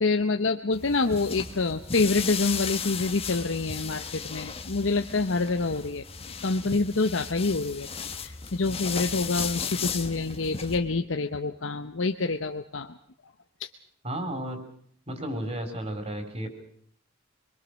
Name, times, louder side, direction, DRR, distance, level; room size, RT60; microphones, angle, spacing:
voice 1, 0.0-6.1 6.4-7.9 8.2-13.0 13.6-13.7, left 3 dB, 80° left, 6 dB, 1.0 m, -27 dB
sound 1, 0.7-10.8, left 6 dB, 30° left, 1.5 m, -35 dB
voice 2, 14.0-14.6 15.1-16.5, right 1 dB, 35° right, 7 dB, 4.5 m, -33 dB
26.5 x 22.0 x 6.4 m, 0.62 s
head